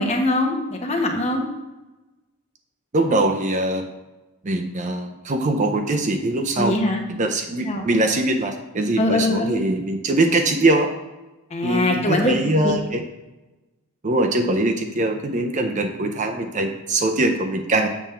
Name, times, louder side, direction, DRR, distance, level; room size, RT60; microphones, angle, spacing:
voice 1, 0.0-1.4 6.6-7.0 7.7-7.9 9.0-9.6 11.5-12.4 12.6-12.7, left 1 dB, 30° left, 2 dB, 0.9 m, -22 dB
voice 2, 2.9-3.9 4.4-6.8 7.1-10.9 11.6-13.0 14.0-17.9, right 2 dB, 35° right, 4 dB, 0.5 m, -22 dB
7.3 x 3.5 x 5.5 m, 1.1 s
head